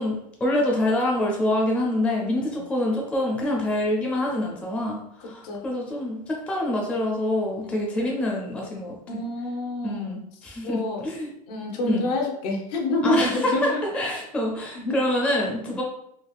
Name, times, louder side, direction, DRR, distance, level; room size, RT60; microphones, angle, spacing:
voice 1, 0.0-9.2 9.8-11.3 11.9-12.1 13.0-15.8, left 1 dB, 5° left, -2 dB, 0.4 m, -26 dB
voice 2, 5.2-5.6 7.7-7.9 9.1-10.2 10.6-11.0 11.5-13.8 14.7-15.0 15.7-15.8, left 2 dB, 75° left, 1 dB, 0.8 m, -28 dB
3.4 x 2.3 x 2.3 m, 0.74 s
supercardioid pair, 155°, 20 cm